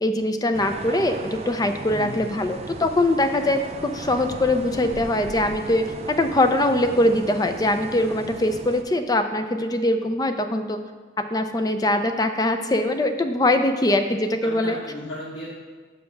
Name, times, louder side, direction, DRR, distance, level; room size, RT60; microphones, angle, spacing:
voice 1, 0.0-10.8 11.2-14.8, left 1 dB, 20° left, 7 dB, 0.5 m, -22 dB
sound 1, 0.5-8.8, right 3 dB, 35° right, 0.4 m, -37 dB
voice 2, 1.9-2.3 14.4-15.5, left 1 dB, 80° left, -7 dB, 1.7 m, -35 dB
6.8 x 5.3 x 5.9 m, 1.4 s
head